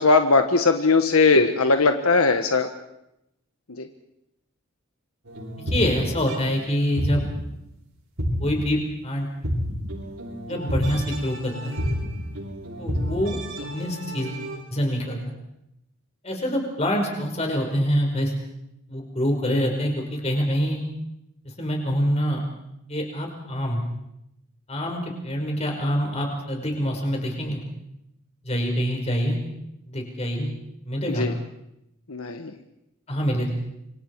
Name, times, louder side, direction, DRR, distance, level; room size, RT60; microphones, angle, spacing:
voice 1, 0.0-2.7 3.8-3.9 31.1-31.3 32.1-32.5, left 3 dB, 80° left, 6 dB, 1.5 m, -19 dB
sound 1, 5.2-6.6 7.0-7.6 8.2-8.8 9.4-14.6, equal, 70° right, 7.2 m, -30 dB
voice 2, 5.7-7.2 8.4-9.3 10.5-11.8 12.8-13.4 13.7-14.4 14.7-15.2 16.2-18.3 18.9-20.8 21.6-22.4 22.9-23.8 24.7-27.6 28.4-29.4 29.9-30.5 30.9-31.3 33.1-33.5, equal, 30° left, 2 dB, 5.3 m, -25 dB
28.0 x 24.5 x 4.8 m, 0.82 s
head